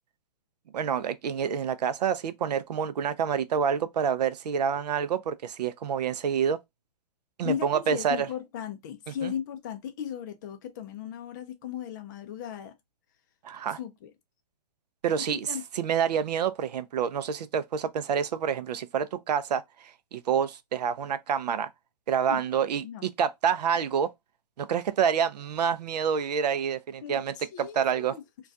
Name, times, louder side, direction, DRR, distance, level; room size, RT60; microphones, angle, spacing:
voice 1, 0.7-6.6 7.4-8.3 9.2-9.3 13.4-13.8 15.0-15.5 15.8-21.7 22.1-24.1 24.6-28.2, right 7 dB, 75° right, 0.4 m, -28 dB
voice 2, 7.4-12.7 13.8-14.1 15.3-15.6 22.2-22.4 22.8-23.0 27.0-28.2, left 9 dB, 30° left, 0.4 m, -36 dB
2.3 x 2.2 x 2.5 m
hypercardioid pair, 150°, 21 cm